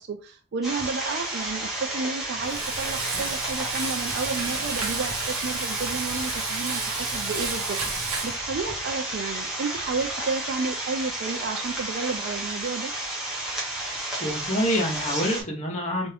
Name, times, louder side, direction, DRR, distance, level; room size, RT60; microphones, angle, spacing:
voice 1, 0.0-12.9, right 4 dB, 50° right, 5 dB, 0.4 m, -32 dB
sound 1, 0.6-15.4, right 1 dB, ahead, 1.1 m, -32 dB
Frying (food), 2.4-8.4, right 4 dB, 90° right, 1.0 m, -32 dB
voice 2, 14.2-16.1, equal, 35° left, -1 dB, 1.0 m, -26 dB
3.5 x 2.5 x 3.3 m, 0.36 s
head